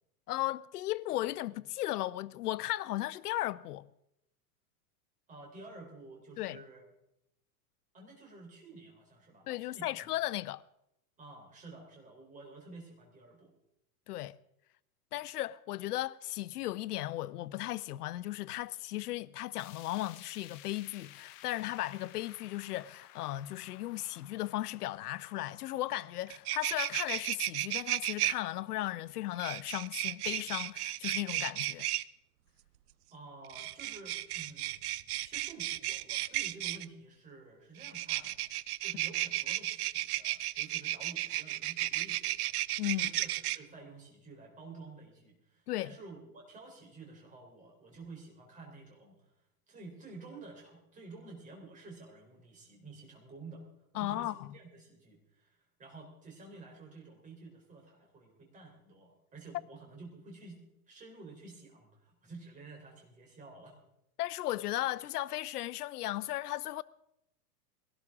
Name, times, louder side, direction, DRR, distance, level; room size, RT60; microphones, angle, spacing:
voice 1, 0.3-3.9 6.4-6.6 9.5-10.6 14.1-14.4 15.1-31.9 42.8-43.1 45.7-45.9 54.0-54.4 64.2-66.8, left 15 dB, 75° left, 0.6 m, -36 dB
voice 2, 5.3-6.8 7.9-10.1 11.2-13.5 33.1-34.9 35.2-38.4 38.8-42.5 42.9-49.3 49.7-53.7 53.9-60.6 60.9-63.8, right 3 dB, 15° right, 3.6 m, -51 dB
sound 1, 19.6-29.7 30.1-30.2 30.6-30.7 31.6-31.7, left 12 dB, 25° left, 0.6 m, -57 dB
sound 2, 25.9-26.0 26.3-28.3 29.4-32.0 33.4-36.8 37.8-43.6, right 15 dB, 70° right, 0.7 m, -34 dB
20.5 x 17.5 x 3.6 m
supercardioid pair, 160°, 46 cm